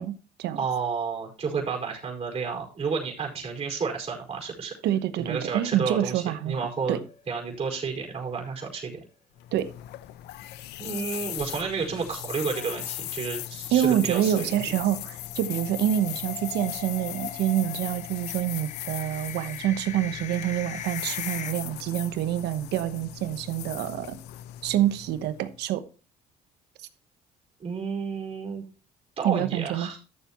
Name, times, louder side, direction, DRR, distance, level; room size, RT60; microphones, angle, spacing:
voice 1, 0.0-0.6 4.8-7.0 9.5-9.7 13.7-24.2 24.6-25.8 29.2-29.9, right 11 dB, 80° right, 11 dB, 1.1 m, -27 dB
voice 2, 0.6-4.7 5.2-9.0 10.8-14.6 27.6-28.6 29.2-30.0, right 5 dB, 35° right, 0 dB, 4.9 m, -31 dB
sound 1, 6.7-7.5 7.8-7.9 8.3-8.4 12.5-21.5, left 8 dB, 45° left, 0.8 m, -41 dB
sound 2, 9.4-25.6, left 14 dB, 85° left, 0.6 m, -38 dB
13.0 x 7.3 x 3.0 m, 0.34 s
cardioid pair, 110°, 17 cm